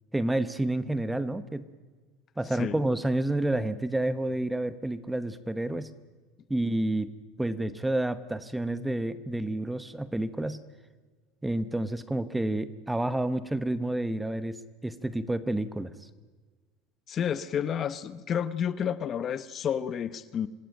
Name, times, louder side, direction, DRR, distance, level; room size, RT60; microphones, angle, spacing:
voice 1, 0.1-1.6 2.4-5.9 6.5-7.1 7.4-10.6 11.4-15.9, right 1 dB, 5° right, 13 dB, 0.8 m, -29 dB
voice 2, 17.1-20.5, left 8 dB, 25° left, 15 dB, 0.8 m, -30 dB
26.5 x 19.0 x 9.0 m, 1.4 s
supercardioid pair, 165°, 0 cm